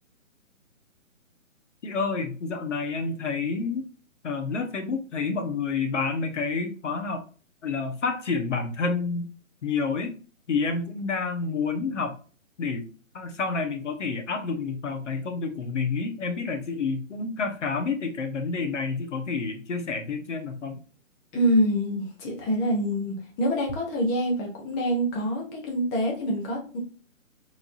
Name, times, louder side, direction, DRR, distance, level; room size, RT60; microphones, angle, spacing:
voice 1, 1.8-3.9 4.2-7.2 7.6-9.3 9.6-10.1 10.5-12.2 12.6-12.9 13.1-20.8, left 4 dB, 60° left, 5 dB, 1.3 m, -29 dB
voice 2, 21.3-26.8, equal, 15° left, 0 dB, 0.8 m, -26 dB
4.6 x 3.8 x 2.6 m, 0.37 s
figure-of-eight pair, 145°, 40 cm